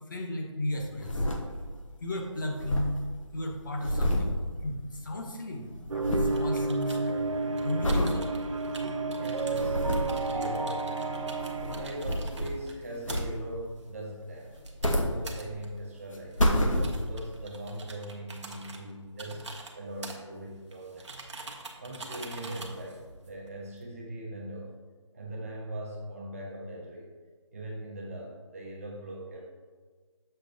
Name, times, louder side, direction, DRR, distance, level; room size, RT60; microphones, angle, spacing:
voice 1, 0.1-1.3 2.0-3.0 3.3-8.3, left 1 dB, 40° left, 1 dB, 0.8 m, -35 dB
sound 1, 0.8-2.2 2.4-5.2 5.5-6.5 6.9-7.3 7.8-8.2 8.7-8.8 9.3-10.2 11.2-12.7 13.0-13.6 14.5-15.7 16.1-17.3 17.9-18.0, equal, 85° left, 1.1 m, -29 dB
sound 2, 5.9-12.0, right 3 dB, 80° right, 0.6 m, -31 dB
sound 3, 6.3-23.8, right 3 dB, 65° right, 0.9 m, -47 dB
voice 2, 9.2-10.8 11.7-14.5 14.8-16.4 16.8-19.5 19.7-21.2 21.8-24.7 25.1-27.1 27.5-29.6, right 1 dB, 25° right, -2 dB, 0.9 m, -40 dB
6.7 x 5.9 x 2.6 m, 1.5 s
figure-of-eight pair, 165°, 16 cm